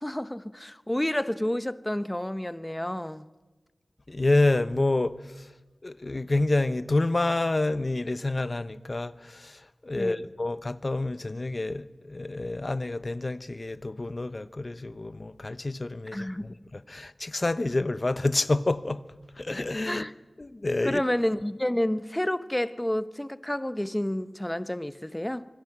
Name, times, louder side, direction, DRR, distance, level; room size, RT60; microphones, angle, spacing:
voice 1, 0.0-3.3 9.9-10.2 16.1-16.5 19.9-20.1 20.8-25.5, left 1 dB, 15° left, 0.9 m, -30 dB
voice 2, 4.1-5.5 5.8-19.0 19.4-20.0 20.4-21.0, left 2 dB, 40° left, 1.0 m, -28 dB
26.0 x 24.5 x 6.1 m
wide cardioid pair, 75°, 0 cm